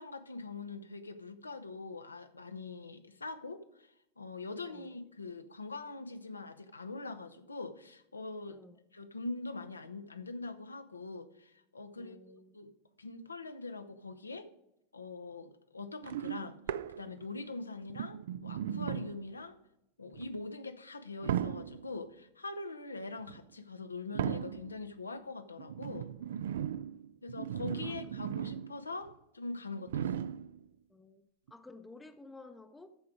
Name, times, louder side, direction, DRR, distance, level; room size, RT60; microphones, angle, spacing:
voice 1, 0.0-8.6 8.9-12.7 13.0-14.5 14.9-16.6 17.0-19.6 20.0-26.1 27.2-30.2, left 3 dB, 80° left, 0.8 m, -43 dB
voice 2, 4.6-4.9 8.5-8.8 12.0-12.6 27.8-28.1 30.9-32.9, left 2 dB, 10° left, 0.7 m, -53 dB
sound 1, 16.0-17.4 17.9-19.3 20.1-20.4 21.2-22.0 23.2-23.4 24.1-24.8 25.6-28.8 29.1-29.2 29.9-30.6 31.5-31.6, right 10 dB, 60° right, 0.3 m, -37 dB
13.5 x 4.7 x 4.9 m
figure-of-eight pair, 90°, 0 cm